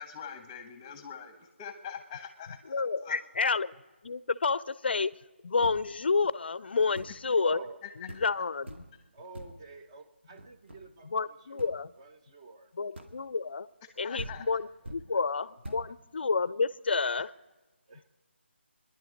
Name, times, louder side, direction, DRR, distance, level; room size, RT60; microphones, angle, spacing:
voice 1, 0.0-3.2 8.1-8.3 13.8-14.5, left 7 dB, 15° left, 8 dB, 1.0 m, -44 dB
voice 2, 2.7-3.7 4.0-5.1 5.4-7.6 8.2-8.8 11.1-11.9 12.8-13.7 14.0-17.3, left 4 dB, 60° left, 18 dB, 0.5 m, -29 dB
sound 1, 5.6-6.1 6.9-7.3 7.7-7.8 8.1-8.4 8.7-9.0 9.3-9.7 10.4-11.0 11.6-11.8 12.9-13.3 13.9-14.0 14.2-15.2 15.6-16.0, right 1 dB, 70° right, 2.1 m, -44 dB
voice 3, 7.4-7.8 9.1-12.7 14.3-14.4 14.8-15.2 17.9-18.0, right 3 dB, 25° right, 7 dB, 0.9 m, -48 dB
24.0 x 11.0 x 5.1 m, 1.2 s
figure-of-eight pair, 165°, 6 cm